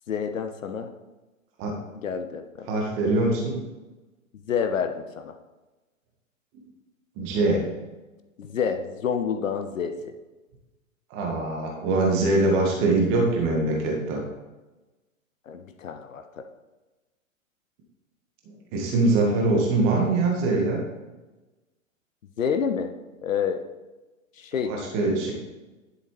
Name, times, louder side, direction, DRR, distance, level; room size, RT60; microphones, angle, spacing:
voice 1, 0.1-0.9 2.0-2.7 4.5-5.3 8.4-9.9 15.5-16.4 22.4-22.9 23.2-23.6 24.4-24.7, left 7 dB, 70° left, 7 dB, 0.8 m, -28 dB
voice 2, 2.7-3.6 7.2-7.7 11.1-14.3 18.7-20.8 24.7-25.3, right 2 dB, 30° right, 0 dB, 1.8 m, -23 dB
10.5 x 7.8 x 3.4 m, 1.1 s
figure-of-eight pair, 110°, 41 cm